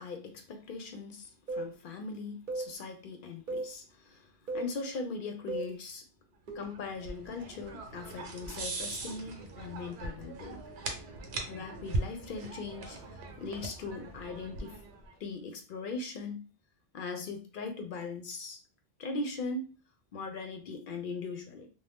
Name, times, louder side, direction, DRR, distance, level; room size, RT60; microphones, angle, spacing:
voice 1, 0.0-6.0 6.5-10.6 11.5-14.8 15.2-16.5 16.9-18.6 19.0-19.8 20.1-21.7, left 3 dB, 60° left, 0.7 m, -40 dB
sound 1, 1.5-1.7 2.5-2.7 3.5-3.7 4.5-4.7 5.5-5.7 6.5-6.8, right 2 dB, 55° right, 0.8 m, -36 dB
sound 2, 6.6-15.1, right 2 dB, 85° right, 0.9 m, -40 dB
2.6 x 2.0 x 3.4 m
omnidirectional pair, 1.1 m